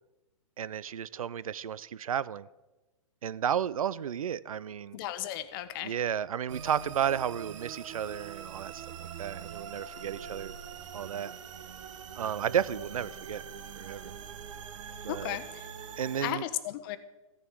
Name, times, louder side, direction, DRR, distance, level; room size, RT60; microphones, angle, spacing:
voice 1, 0.6-2.5 3.2-5.0 5.8-8.9 9.2-10.6 10.9-11.3 12.1-13.4 13.8-14.2 15.0-15.4 16.0-16.4, right 9 dB, 90° right, 0.4 m, -32 dB
voice 2, 4.9-5.9 15.1-15.7 16.2-17.0, left 13 dB, 40° left, 0.8 m, -35 dB
sound 1, 6.5-16.3, right 7 dB, 65° right, 1.1 m, -44 dB
15.0 x 6.9 x 4.7 m
hypercardioid pair, 135°, 17 cm